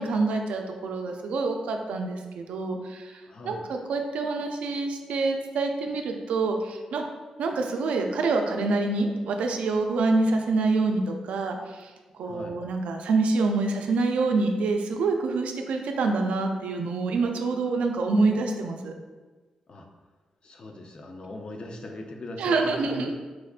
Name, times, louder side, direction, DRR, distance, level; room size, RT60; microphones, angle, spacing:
voice 1, 0.0-7.0 7.4-18.9 22.4-23.1, right 3 dB, 90° right, 3 dB, 0.3 m, -26 dB
voice 2, 3.3-3.6 12.2-12.6 19.7-19.9 20.4-23.1, left 2 dB, 50° left, 3 dB, 0.4 m, -39 dB
4.6 x 2.1 x 2.4 m, 1.3 s
cardioid pair, 75°, 2 cm